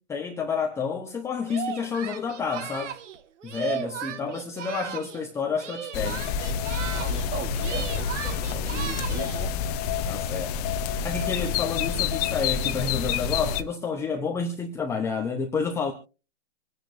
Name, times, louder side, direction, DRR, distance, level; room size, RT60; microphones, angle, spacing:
voice 1, 0.1-3.0 3.4-6.2 10.0-10.6 11.0-15.9, left 5 dB, 5° left, 0.8 m, -29 dB
Singing, 1.4-5.3 5.5-7.3 7.6-9.5, right 8 dB, 65° right, 1.5 m, -36 dB
sound 1, 5.9-13.6, left 7 dB, 30° left, 1.0 m, -28 dB
voice 2, 6.9-8.1 8.5-9.5, right 4 dB, 20° right, 1.4 m, -37 dB
26.5 x 10.0 x 2.7 m
hypercardioid pair, 150°, 39 cm